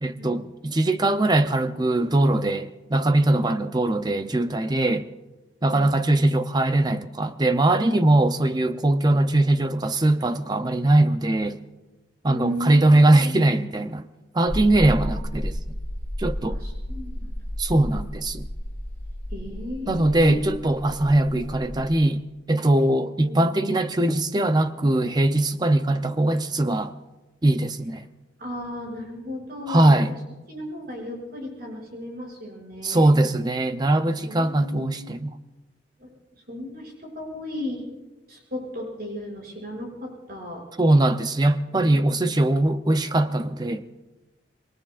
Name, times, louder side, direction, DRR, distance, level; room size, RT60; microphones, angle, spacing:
voice 1, 0.0-5.1 5.6-11.6 12.2-14.1 14.3-15.6 16.2-16.6 17.6-18.5 19.9-22.2 22.5-26.9 27.4-28.0 29.7-30.2 32.8-35.3 40.8-43.8, right 1 dB, 20° right, 0.6 m, -21 dB
voice 2, 12.3-12.8 13.2-13.4 15.0-15.2 16.4-17.3 19.3-20.5 23.2-23.5 28.4-30.0 30.5-33.1 34.0-35.1 36.0-37.9 38.3-40.6 41.7-42.3, left 1 dB, 50° right, 6.3 m, -36 dB
sound 1, 14.5-21.9, equal, 10° left, 3.1 m, -32 dB
26.5 x 22.0 x 2.5 m
head